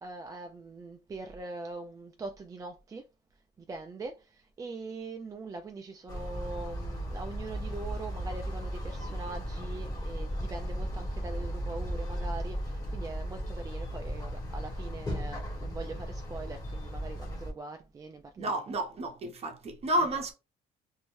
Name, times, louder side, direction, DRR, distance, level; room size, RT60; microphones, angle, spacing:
voice 1, 0.0-3.0 3.6-18.6, right 3 dB, 20° right, 0.3 m, -42 dB
sound 1, 6.1-17.5, equal, 20° left, 1.0 m, -36 dB
voice 2, 18.4-20.3, right 1 dB, 35° right, 0.8 m, -31 dB
2.6 x 2.1 x 3.1 m
cardioid pair, 110°, 17 cm